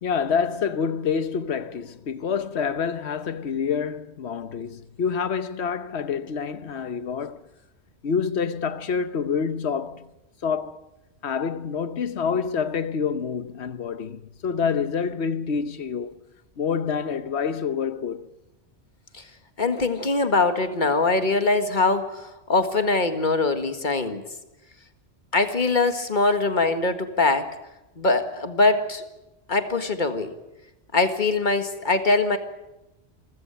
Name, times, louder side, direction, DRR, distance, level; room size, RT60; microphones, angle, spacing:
voice 1, 0.0-7.4 8.0-10.1 10.4-10.9 11.2-16.1 16.6-18.3, left 6 dB, 70° left, 1.3 m, -27 dB
voice 2, 19.6-24.2 25.3-27.5 28.0-29.0 29.5-30.3 30.9-32.4, left 3 dB, 45° left, 1.9 m, -22 dB
26.5 x 15.5 x 9.0 m
omnidirectional pair, 1.2 m